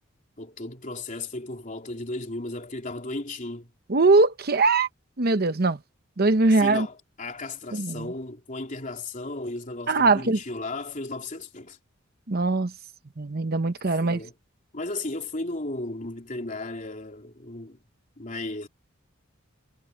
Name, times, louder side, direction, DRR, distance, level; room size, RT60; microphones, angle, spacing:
voice 1, 0.4-3.7 6.6-11.8 14.0-14.3 14.7-17.8 18.2-18.7, left 2 dB, 40° left, 3.3 m, -35 dB
voice 2, 3.9-4.9 5.2-5.8 6.2-6.9 7.7-8.1 9.9-10.4 12.3-12.7 13.2-14.2, right 3 dB, 50° right, 0.9 m, -21 dB
head